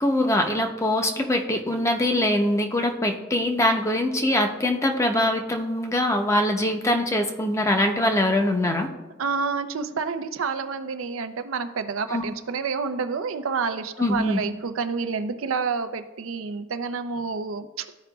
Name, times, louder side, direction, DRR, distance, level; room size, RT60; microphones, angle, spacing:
voice 1, 0.0-8.9 12.1-12.2 14.0-14.4, left 1 dB, 15° left, 4 dB, 0.7 m, -23 dB
voice 2, 9.2-17.9, right 5 dB, 85° right, 9 dB, 0.5 m, -29 dB
14.0 x 4.9 x 2.3 m, 1.1 s
head